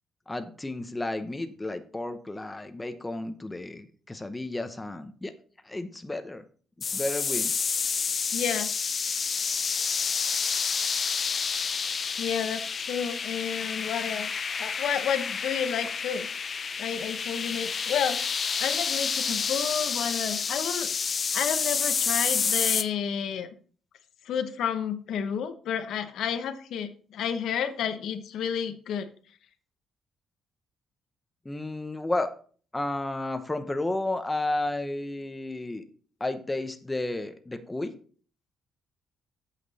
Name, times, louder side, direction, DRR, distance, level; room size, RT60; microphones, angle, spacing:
voice 1, 0.3-5.3 5.6-6.4 6.9-7.5 31.4-32.3 32.7-35.8 36.2-38.0, left 2 dB, 15° left, 9 dB, 0.8 m, -32 dB
sound 1, 6.8-22.8, left 6 dB, 45° left, 0.6 m, -29 dB
voice 2, 8.3-8.7 12.2-14.3 14.6-16.3 16.8-18.2 18.6-20.9 21.3-23.5 24.3-29.1, left 8 dB, 75° left, 9 dB, 0.8 m, -31 dB
8.3 x 6.0 x 4.1 m, 0.44 s
cardioid pair, 90°, 0 cm